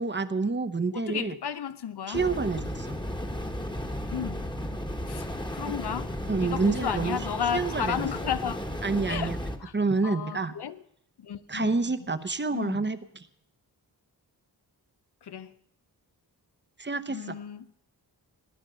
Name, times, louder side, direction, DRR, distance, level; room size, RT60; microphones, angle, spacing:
voice 1, 0.0-1.4 2.1-2.9 6.3-7.2 7.5-8.1 8.8-9.4 9.7-10.5 11.5-13.3 16.8-17.4, right 4 dB, 25° right, 0.9 m, -28 dB
voice 2, 0.9-2.2 4.1-4.4 5.1-5.3 5.5-8.6 9.1-9.3 9.6-9.7 10.0-10.8 11.2-11.7 12.5-12.8 15.3-15.5 17.1-17.8, left 8 dB, 75° left, 0.9 m, -33 dB
sound 1, 2.1-9.6, left 1 dB, 10° left, 1.3 m, -34 dB
17.0 x 10.5 x 6.8 m
wide cardioid pair, 105°, 40 cm